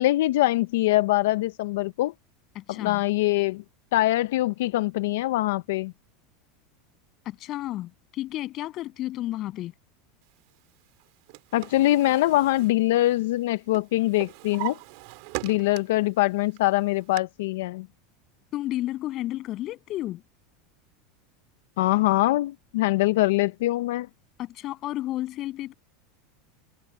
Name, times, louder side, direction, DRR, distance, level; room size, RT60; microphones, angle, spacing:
voice 1, 0.0-2.1 2.7-3.6 3.9-5.9 11.5-14.8 15.4-17.9 21.8-24.1, left 17 dB, 75° left, 0.4 m, -23 dB
voice 2, 2.6-3.0 7.3-9.7 18.5-20.2 24.4-25.7, left 15 dB, 35° left, 7.1 m, -32 dB
Drawer open or close, 11.0-13.4 13.7-16.1 16.5-17.2, right 24 dB, 55° right, 2.5 m, -39 dB
supercardioid pair, 165°, 0 cm